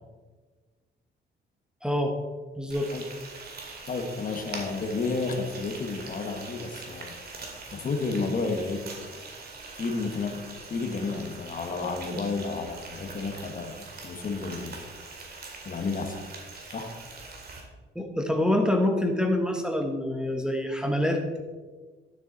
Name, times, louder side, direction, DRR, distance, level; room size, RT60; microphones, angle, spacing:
voice 1, 1.8-2.1 2.6-2.9 17.9-21.4, left 1 dB, 5° right, 3 dB, 1.1 m, -26 dB
Frying (food), 2.7-17.6, right 3 dB, 50° right, 2.3 m, -43 dB
voice 2, 3.8-7.1 7.7-8.8 9.1-9.2 9.8-10.4 10.7-14.9 15.6-16.2 16.7-16.9, left 4 dB, 45° left, 5 dB, 1.3 m, -31 dB
11.5 x 7.0 x 4.0 m, 1.4 s
cardioid pair, 90°, 20 cm